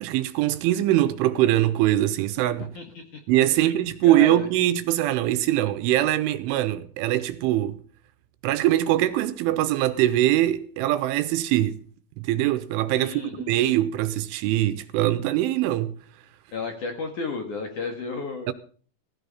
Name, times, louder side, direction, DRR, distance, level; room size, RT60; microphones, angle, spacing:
voice 1, 0.0-2.7 3.3-7.8 8.4-11.8 12.2-13.2 13.5-15.9 18.5-18.6, right 14 dB, 80° right, 3.2 m, -22 dB
voice 2, 3.5-4.5 13.0-13.5 16.5-18.5, left 3 dB, 55° left, 2.3 m, -33 dB
16.5 x 15.0 x 4.1 m
omnidirectional pair, 5.9 m